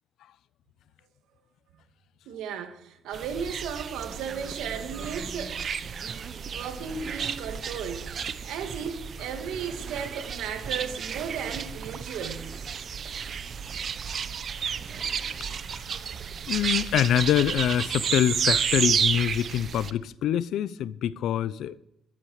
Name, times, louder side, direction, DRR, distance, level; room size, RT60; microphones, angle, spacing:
voice 1, 2.3-5.6 6.5-12.6, right 7 dB, 90° right, 2.1 m, -35 dB
sound 1, 3.1-19.9, right 7 dB, 55° right, 0.9 m, -32 dB
voice 2, 16.5-21.8, left 10 dB, 80° left, 0.6 m, -25 dB
13.0 x 12.5 x 4.9 m
cardioid pair, 90°, 0 cm